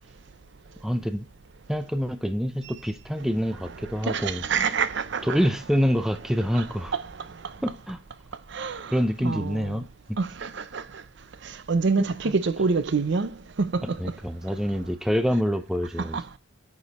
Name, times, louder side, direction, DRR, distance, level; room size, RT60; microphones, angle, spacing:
voice 1, 0.8-1.3 1.7-4.4 5.2-6.9 7.6-8.0 8.9-9.8 12.3-12.4 13.8-16.2, equal, ahead, 0.6 m, -26 dB
voice 2, 3.6-5.5 6.5-7.5 8.5-9.8 10.2-11.0 11.4-14.2 16.0-16.3, right 4 dB, 60° right, 0.6 m, -28 dB
9.1 x 5.0 x 4.1 m
head